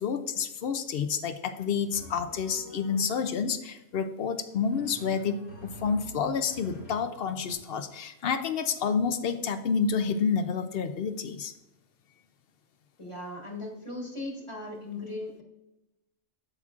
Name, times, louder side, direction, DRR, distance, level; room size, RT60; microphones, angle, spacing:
voice 1, 0.0-11.5, left 6 dB, 60° left, 9 dB, 0.6 m, -29 dB
Drum, 1.9-3.4 4.5-7.5, right 1 dB, 85° left, 2.7 m, -47 dB
voice 2, 13.0-15.4, left 2 dB, 25° left, -1 dB, 1.3 m, -38 dB
8.0 x 7.3 x 2.4 m, 0.94 s
omnidirectional pair, 1.3 m